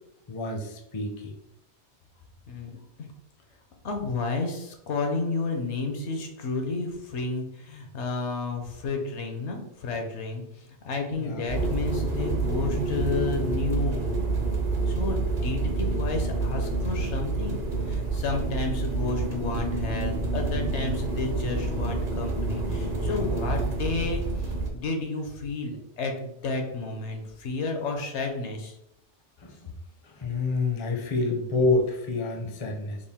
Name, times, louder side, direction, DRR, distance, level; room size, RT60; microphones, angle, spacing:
voice 1, 0.3-1.3 11.2-11.4 29.4-29.7 30.0-33.0, left 3 dB, 35° left, 2 dB, 0.4 m, -28 dB
voice 2, 2.5-3.1 3.8-14.5 14.9-28.8, left 3 dB, 75° left, 4 dB, 1.0 m, -32 dB
sound 1, 11.5-24.7, right 3 dB, 45° right, 0.6 m, -28 dB
3.7 x 2.3 x 3.5 m, 0.80 s
omnidirectional pair, 1.2 m